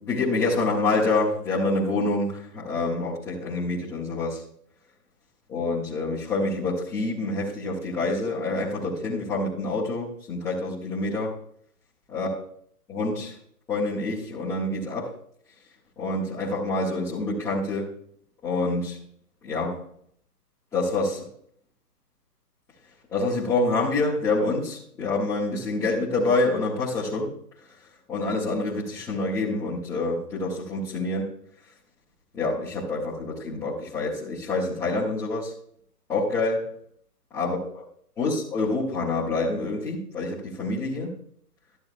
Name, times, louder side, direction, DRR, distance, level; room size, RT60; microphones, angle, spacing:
voice 1, 0.0-4.4 5.5-11.3 12.1-12.3 12.9-13.3 13.7-15.1 16.0-17.9 18.4-19.0 19.4-19.8 20.7-21.2 23.1-27.3 28.1-31.3 32.3-35.5 36.1-36.7 37.3-37.6 38.2-41.1, left 2 dB, 5° left, -12 dB, 0.8 m, -27 dB
12.5 x 7.5 x 2.4 m, 0.63 s
hypercardioid pair, 150°, 48 cm